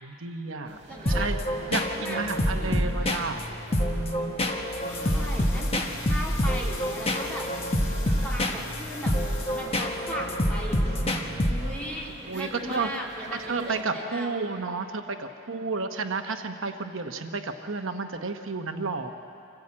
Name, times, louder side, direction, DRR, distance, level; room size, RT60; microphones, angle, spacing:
voice 1, 0.0-0.8 1.1-1.4 1.7-3.5 3.7-4.3 10.9-11.4 12.3-13.0 13.3-19.1, right 4 dB, 65° right, 5 dB, 1.0 m, -32 dB
sound 1, 0.7-13.8, right 1 dB, 30° right, 2.8 m, -46 dB
voice 2, 0.9-1.3 1.9-2.4 2.6-2.8 4.9-7.5 8.2-9.1 9.5-14.4, equal, 5° left, -3 dB, 2.8 m, -38 dB
sound 2, 1.1-11.9, equal, 25° left, 1.3 m, -27 dB
sound 3, 4.4-12.9 13.3-13.6 13.9-14.0 14.4-14.5, left 4 dB, 85° left, 3.4 m, -45 dB
26.0 x 15.5 x 8.6 m, 2.7 s
head